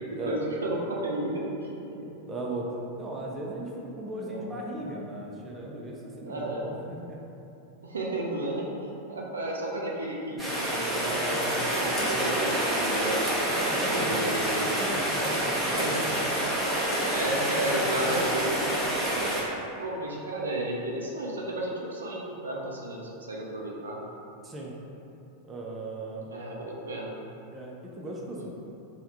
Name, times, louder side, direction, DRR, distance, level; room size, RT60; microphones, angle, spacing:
voice 1, 0.1-2.3 4.3-4.7 6.2-6.7 7.8-13.2 13.8-14.7 15.6-16.1 16.8-18.6 19.0-19.1 19.8-24.0 26.3-27.2, right 1 dB, 70° right, -2 dB, 0.5 m, -33 dB
voice 2, 2.3-2.7 3.0-7.2 11.1-11.7 13.4-14.3 14.8-15.8 19.1-19.3 24.4-24.7 25.5-26.3 27.5-28.5, right 1 dB, 20° right, -3 dB, 0.5 m, -37 dB
Rain, 10.4-19.4, right 1 dB, ahead, 0.9 m, -27 dB
3.4 x 2.3 x 4.3 m, 2.8 s
figure-of-eight pair, 90°, 0 cm